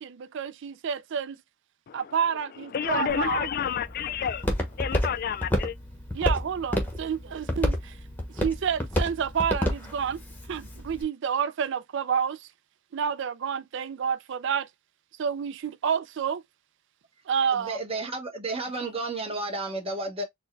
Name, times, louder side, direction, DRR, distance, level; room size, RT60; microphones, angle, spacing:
voice 1, 0.0-1.4 1.9-3.5 6.1-8.0 8.4-10.2 10.5-12.5 12.9-14.7 15.2-16.4 17.3-17.8, right 7 dB, 60° right, 0.4 m, -29 dB
voice 2, 2.6-4.5 4.7-5.8, left 8 dB, 45° left, 0.3 m, -30 dB
Walk footsteps, 3.1-11.0, left 1 dB, 10° left, 0.9 m, -30 dB
voice 3, 17.5-20.2, right 2 dB, 25° right, 1.0 m, -32 dB
4.4 x 2.2 x 3.2 m
head